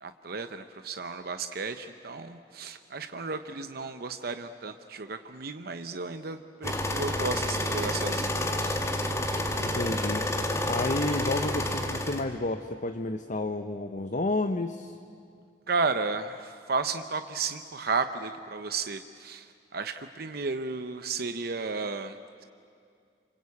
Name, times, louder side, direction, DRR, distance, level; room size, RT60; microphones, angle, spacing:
voice 1, 0.0-8.8 15.7-22.2, right 4 dB, 60° right, 9 dB, 0.8 m, -33 dB
sound 1, 6.6-12.2, left 1 dB, 15° left, 1.7 m, -29 dB
voice 2, 9.6-10.2 10.7-15.0, left 2 dB, 45° left, 7 dB, 0.9 m, -31 dB
28.0 x 25.0 x 8.5 m, 2.3 s
head